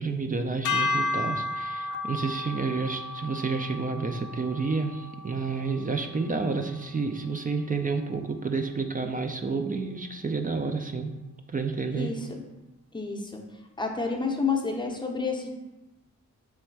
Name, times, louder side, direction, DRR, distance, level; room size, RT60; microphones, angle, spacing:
voice 1, 0.0-11.1 11.5-12.1, right 4 dB, 30° right, 5 dB, 0.4 m, -30 dB
sound 1, 0.6-7.0, left 2 dB, 70° left, 0.5 m, -33 dB
voice 2, 12.0-12.4 12.9-13.4 13.8-15.5, left 4 dB, 15° left, 2 dB, 0.7 m, -29 dB
3.4 x 3.2 x 4.6 m, 1.0 s
cardioid pair, 80°, 30 cm